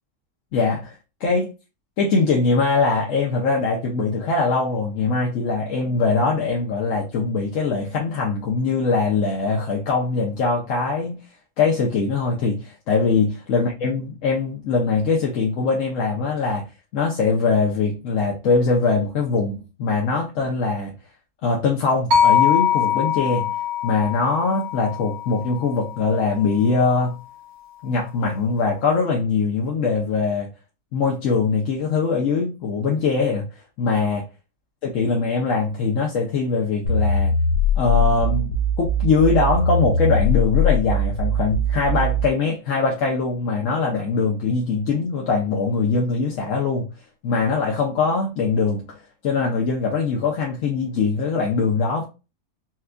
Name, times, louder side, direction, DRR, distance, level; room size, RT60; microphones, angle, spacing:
voice 1, 0.5-1.5 2.0-11.2 11.6-16.6 16.9-20.9 21.4-23.5 23.8-27.2 27.8-30.5 30.9-33.5 33.8-34.3 34.9-37.3 37.8-46.9 47.2-48.8 49.2-52.0, left 4 dB, 60° left, 1.0 m, -22 dB
sound 1, 22.1-26.3, left 8 dB, 70° right, 1.2 m, -22 dB
sound 2, 36.8-42.3, left 1 dB, 90° left, 1.5 m, -21 dB
4.4 x 2.3 x 2.4 m
omnidirectional pair, 1.6 m